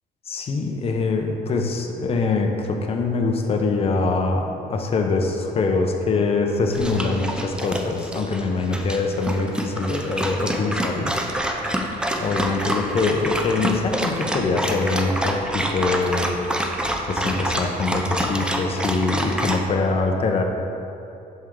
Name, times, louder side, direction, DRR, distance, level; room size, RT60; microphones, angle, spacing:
voice 1, 0.3-11.2 12.1-16.3 17.1-20.4, left 3 dB, 35° left, 3 dB, 0.7 m, -23 dB
Dog, 6.7-19.6, right 1 dB, 5° right, 0.4 m, -27 dB
6.5 x 4.4 x 3.7 m, 2.8 s
cardioid pair, 110°, 17 cm